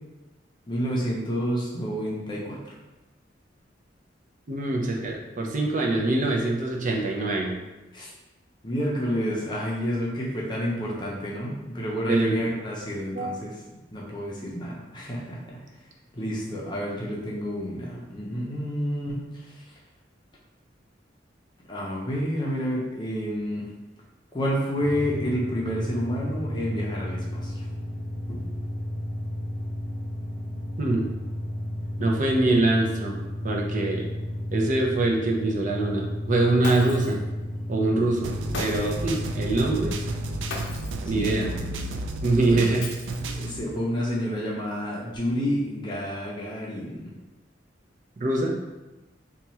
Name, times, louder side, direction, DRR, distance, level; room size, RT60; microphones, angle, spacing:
voice 1, 0.7-2.6 7.9-8.1 8.6-13.5 13.9-15.6 16.1-19.3 19.5-19.6 21.7-23.7 24.3-27.6 28.3-28.5 41.1-41.9 42.5-42.7 43.3-47.1, equal, 25° left, -4 dB, 0.6 m, -29 dB
voice 2, 4.5-7.6 12.1-12.4 13.1-13.3 30.8-31.0 32.0-33.2 33.4-34.1 34.5-37.2 37.7-39.9 41.0-41.5 42.2-42.9 48.2-48.6, right 2 dB, 45° right, -1 dB, 0.6 m, -24 dB
sound 1, 24.7-40.8, left 1 dB, 20° right, 0.9 m, -33 dB
Shatter, 36.6-37.2 38.5-39.1 40.5-41.1 42.8-43.5, left 3 dB, 70° left, 0.6 m, -36 dB
sound 2, 38.2-43.6, right 2 dB, 90° right, 0.3 m, -33 dB
2.9 x 2.3 x 4.1 m, 1.1 s
head